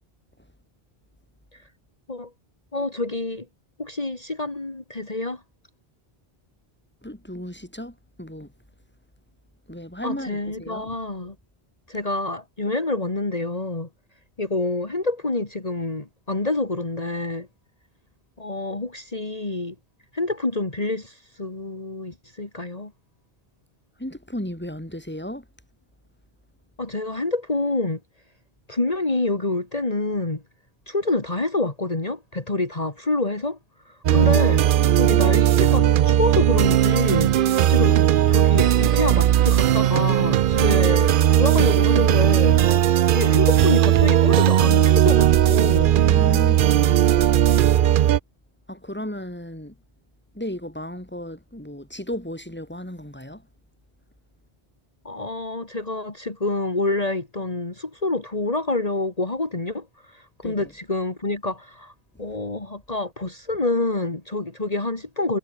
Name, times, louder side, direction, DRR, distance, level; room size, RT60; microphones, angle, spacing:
voice 1, 2.7-3.5 3.8-5.4 10.0-11.3 11.9-13.9 14.4-17.5 18.4-19.8 20.1-22.9 26.8-28.0 28.7-30.4 30.9-33.6 33.8-34.6 35.0-38.0 38.2-46.1 55.0-65.4, left 2 dB, 35° left, 2.6 m, -27 dB
voice 2, 7.0-8.5 9.7-11.0 24.0-25.4 34.2-34.4 46.0-47.0 48.7-49.7 50.3-53.4 60.4-60.7 62.1-62.2, left 1 dB, 10° left, 4.3 m, -35 dB
sound 1, 34.0-48.2, right 11 dB, 60° right, 0.6 m, -17 dB
omnidirectional pair, 1.1 m